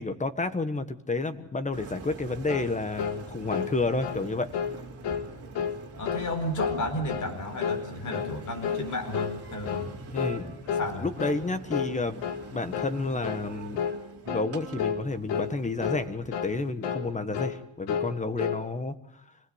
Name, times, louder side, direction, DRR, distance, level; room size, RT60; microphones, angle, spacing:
voice 1, 0.0-4.5 10.1-10.5 10.9-12.2 12.5-13.8 14.3-19.2, left 3 dB, 15° left, 11 dB, 1.3 m, -30 dB
Engine, 1.7-16.7, right 4 dB, 30° right, 4.1 m, -45 dB
sound 1, 2.5-2.7 3.0-3.2 3.5-3.7 4.0-4.2 4.5-4.8 5.0-5.3 5.6-5.8 6.1-6.3 6.6-6.8 7.1-7.3 7.6-7.8 8.1-8.3 8.6-8.9 9.1-9.4 9.7-9.9 10.2-10.4 10.7-10.9 11.2-11.4 11.7-11.9 12.2-12.4 12.7-13.0 13.2-13.5 13.8-14.0 14.3-14.5 14.8-15.0 15.3-15.5 15.8-16.1 16.3-16.5 16.8-17.1 17.3-17.6 17.9-18.6, left 7 dB, 70° left, 2.3 m, -30 dB
voice 2, 6.0-9.9 10.7-11.1, left 1 dB, 40° left, 6 dB, 4.6 m, -33 dB
26.5 x 19.5 x 8.0 m, 0.74 s
cardioid pair, 165°, 45 cm